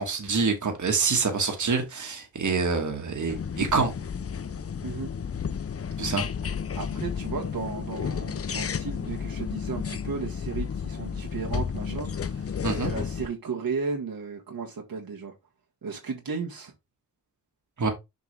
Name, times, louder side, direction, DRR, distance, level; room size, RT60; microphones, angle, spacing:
voice 1, 0.0-3.9 6.0-6.2 12.6-12.9 17.8-17.9, right 4 dB, 55° right, 1.9 m, -26 dB
sound 1, 3.3-13.3, left 6 dB, 40° left, 0.6 m, -32 dB
voice 2, 6.7-15.3 15.8-16.7, right 5 dB, 75° right, 1.8 m, -35 dB
7.0 x 4.6 x 3.4 m
cardioid pair, 65°, 35 cm